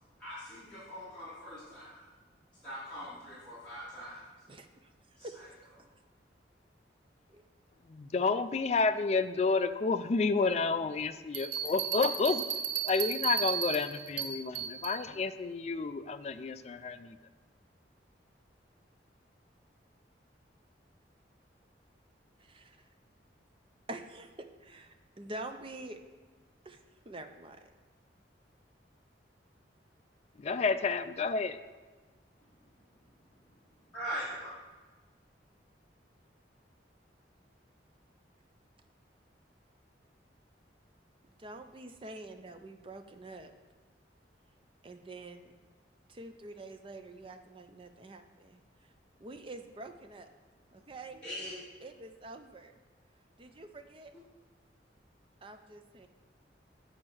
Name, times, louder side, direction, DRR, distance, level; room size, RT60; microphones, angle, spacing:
voice 1, 0.2-2.0 2.6-4.3 5.2-5.3 33.9-34.5 51.2-51.6, equal, 5° left, -13 dB, 2.7 m, -41 dB
voice 2, 4.5-4.9 5.2-5.4 5.8-5.9 7.3-7.4 22.4-22.8 23.9-26.0 26.6-26.8 27.0-27.7 41.4-43.5 44.8-45.5 46.1-48.6 49.2-50.3 50.7-51.2 51.8-52.7 53.4-54.1 55.4-56.1, right 2 dB, 30° right, 7 dB, 0.5 m, -46 dB
voice 3, 7.8-12.4 12.8-17.2 30.4-31.6, left 4 dB, 35° left, 11 dB, 0.3 m, -30 dB
sound 1, 11.3-15.0, right 8 dB, 80° right, 0.9 m, -34 dB
8.7 x 4.3 x 6.2 m, 1.3 s
head